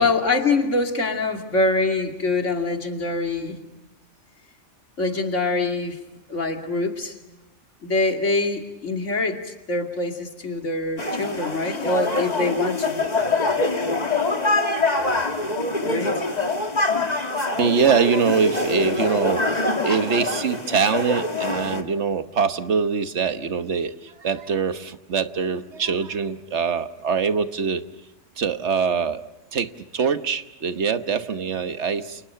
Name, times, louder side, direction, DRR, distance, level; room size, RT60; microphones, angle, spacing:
voice 1, 0.0-3.6 5.0-6.0 6.3-7.2 7.8-13.0 15.8-16.1, left 3 dB, 85° left, 4 dB, 2.9 m, -24 dB
sound 1, 11.0-21.8, left 2 dB, 35° left, 2.0 m, -24 dB
voice 2, 17.6-27.8 28.4-29.2 29.5-32.2, right 6 dB, 70° right, 10 dB, 1.4 m, -23 dB
30.0 x 28.5 x 5.7 m, 0.95 s
omnidirectional pair, 1.2 m